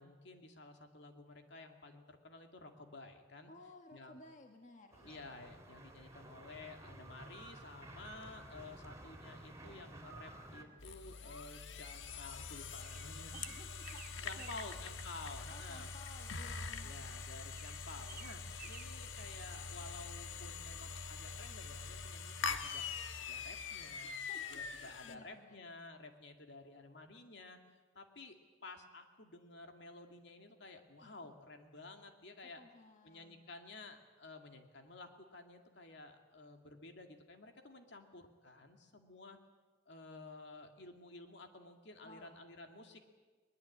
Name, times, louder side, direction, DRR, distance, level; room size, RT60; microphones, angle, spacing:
voice 1, 0.0-3.5 3.9-4.2 5.0-13.3 14.2-15.9 16.8-22.8 23.2-24.2 24.5-27.6 27.9-28.4 28.6-32.6 33.0-39.4 39.9-43.0, left 3 dB, 65° left, 5 dB, 2.5 m, -53 dB
voice 2, 3.5-5.2 13.3-14.9 15.5-17.2 24.0-25.6 31.0-31.3 32.4-33.5 42.0-42.4, left 2 dB, 40° left, 4 dB, 1.5 m, -58 dB
sound 1, 4.9-10.6, right 1 dB, 15° right, 3.2 m, -53 dB
sound 2, 10.8-25.2, left 5 dB, 85° left, 1.4 m, -44 dB
sound 3, 12.8-14.7 17.5-19.2, right 9 dB, 50° right, 0.9 m, -54 dB
21.5 x 21.0 x 8.7 m, 1.4 s
head